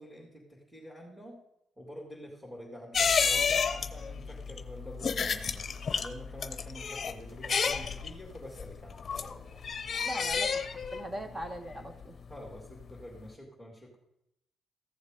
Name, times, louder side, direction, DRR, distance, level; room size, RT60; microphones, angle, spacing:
voice 1, 0.0-1.4 1.8-9.6 12.3-14.0, equal, 5° right, -5 dB, 2.8 m, -47 dB
sound 1, 2.9-12.9 13.2-13.3, left 6 dB, 45° left, 0.8 m, -31 dB
voice 2, 9.9-10.6 10.9-12.2, equal, 25° right, 6 dB, 1.5 m, -40 dB
14.5 x 7.2 x 5.1 m, 0.81 s
cardioid pair, 90°, 0 cm